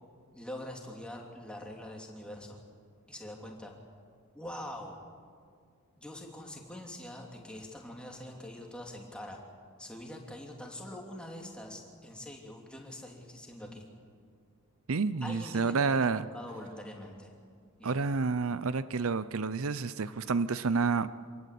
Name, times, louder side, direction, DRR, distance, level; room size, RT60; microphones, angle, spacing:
voice 1, 0.3-2.6 3.1-3.7 4.3-5.0 6.0-9.4 9.8-13.9 15.2-17.3 17.8-18.0, left 1 dB, 5° left, 0 dB, 2.9 m, -44 dB
voice 2, 14.9-16.2 17.8-21.1, right 4 dB, 75° right, 15 dB, 0.6 m, -29 dB
26.5 x 19.0 x 8.5 m, 2.1 s
head